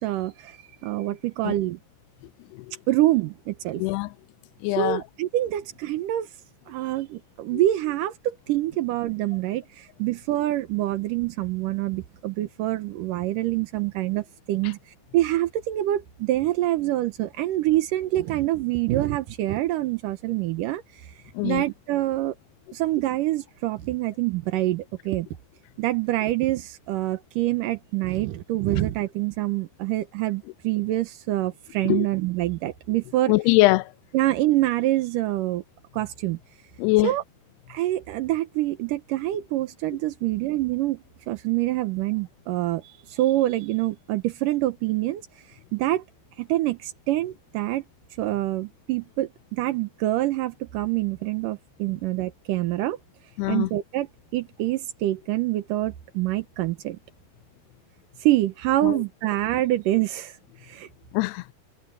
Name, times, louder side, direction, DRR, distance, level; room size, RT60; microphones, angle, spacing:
voice 1, 0.0-1.8 2.9-3.8 4.8-6.3 6.7-14.8 15.1-22.3 22.7-25.3 25.8-33.3 34.1-35.6 35.9-36.4 37.0-37.2 37.7-46.0 46.4-47.8 48.2-53.0 53.5-54.1 54.3-57.0 58.2-60.9, right 15 dB, 75° right, 2.0 m, -26 dB
voice 2, 3.8-4.1 4.6-5.0 7.5-7.6 14.6-14.7 21.3-21.6 31.8-32.1 33.3-33.9 36.8-37.1 53.4-53.7 58.8-59.0 61.1-61.5, left 21 dB, 80° left, 2.5 m, -23 dB
omnidirectional pair, 5.0 m